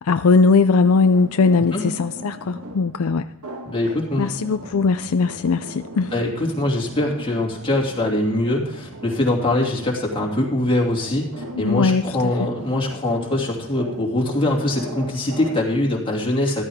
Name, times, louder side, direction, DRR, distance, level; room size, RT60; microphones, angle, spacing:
voice 1, 0.0-3.3 4.2-6.1 11.5-12.5, left 4 dB, 70° left, 10 dB, 0.5 m, -19 dB
sound 1, 0.8-15.8, right 1 dB, 80° right, 1.6 m, -38 dB
voice 2, 3.7-4.3 6.1-16.6, left 1 dB, 25° left, -2 dB, 2.7 m, -23 dB
14.0 x 13.5 x 3.6 m, 0.78 s
head